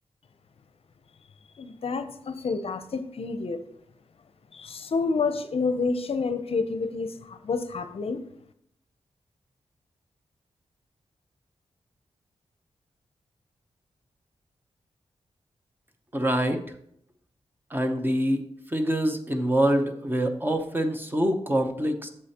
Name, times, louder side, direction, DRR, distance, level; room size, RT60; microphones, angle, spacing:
voice 1, 1.6-3.6 4.5-8.2, left 4 dB, 60° left, 10 dB, 0.6 m, -29 dB
voice 2, 16.1-16.6 17.7-18.4 18.7-22.1, right 1 dB, 20° right, 6 dB, 0.8 m, -25 dB
8.4 x 6.7 x 2.9 m, 0.72 s
wide cardioid pair, 105°, 11 cm